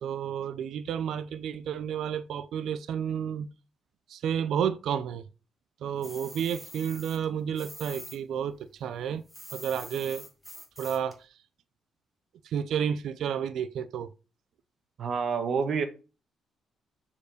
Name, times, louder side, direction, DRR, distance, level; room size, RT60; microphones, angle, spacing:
voice 1, 0.0-3.5 4.1-5.2 5.8-9.2 9.5-10.3 10.8-11.3 12.4-14.1, right 8 dB, 75° right, 0.6 m, -31 dB
sound 1, 6.0-8.2 8.5-11.2, equal, ahead, 2.1 m, -45 dB
voice 2, 15.0-15.9, right 5 dB, 60° right, 1.6 m, -28 dB
6.9 x 4.9 x 6.4 m
cardioid pair, 90°, 0 cm